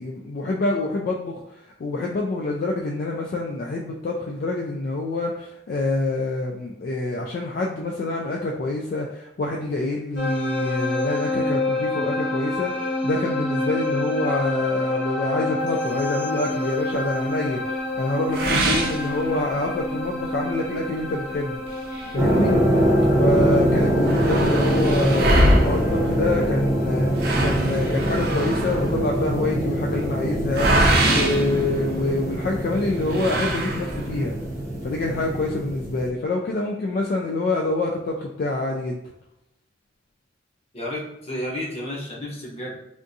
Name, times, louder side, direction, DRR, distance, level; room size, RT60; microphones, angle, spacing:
voice 1, 0.0-21.6 22.1-22.5 23.2-34.3 34.8-39.0, left 2 dB, 55° left, 0 dB, 0.3 m, -26 dB
sound 1, 10.2-27.6, left 2 dB, 75° left, 0.8 m, -29 dB
sound 2, 18.3-19.8 20.2-20.3 20.8-20.9 21.7-23.0 23.3-23.4 23.6-32.4 33.1-34.2, right 1 dB, 55° right, 0.5 m, -24 dB
sound 3, 22.2-36.1, equal, 15° right, 0.6 m, -23 dB
voice 2, 40.7-42.8, left 1 dB, 35° left, -4 dB, 0.8 m, -31 dB
3.5 x 2.5 x 2.6 m, 0.84 s
head